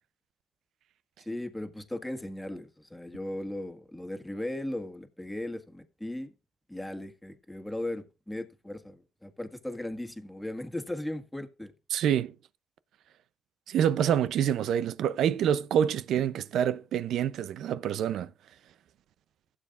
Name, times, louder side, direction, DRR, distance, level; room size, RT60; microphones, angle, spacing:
voice 1, 1.2-6.3 6.7-11.7, left 1 dB, 5° left, 1.6 m, -37 dB
voice 2, 11.9-12.3 13.7-18.3, right 9 dB, 75° right, 0.5 m, -27 dB
16.5 x 7.4 x 2.5 m
cardioid pair, 90°, 0 cm